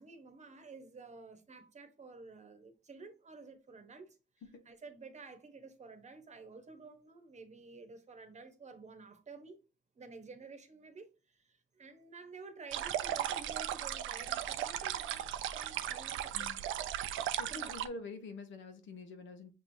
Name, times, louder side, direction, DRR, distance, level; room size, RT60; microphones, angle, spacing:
voice 1, 0.0-4.2 4.7-9.6 9.9-15.2 15.5-16.4 17.5-17.7, right 4 dB, 35° right, 1.0 m, -52 dB
sound 1, 12.7-17.9, right 11 dB, 80° right, 0.5 m, -37 dB
voice 2, 17.4-19.5, left 3 dB, 75° left, 1.0 m, -46 dB
6.4 x 3.0 x 2.7 m
cardioid pair, 90°, 20 cm